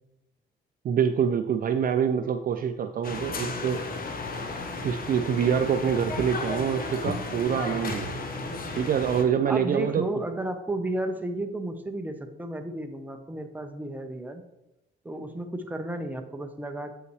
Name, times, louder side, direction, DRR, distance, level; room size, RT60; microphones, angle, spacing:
voice 1, 0.8-3.8 4.8-8.1 8.7-10.1, right 8 dB, 45° right, 8 dB, 0.4 m, -26 dB
sound 1, 3.0-9.2, left 3 dB, 45° left, 1.0 m, -34 dB
voice 2, 9.5-14.4 15.0-16.9, right 1 dB, 10° right, 5 dB, 0.8 m, -33 dB
7.9 x 5.6 x 3.2 m, 0.92 s
cardioid pair, 90°, 20 cm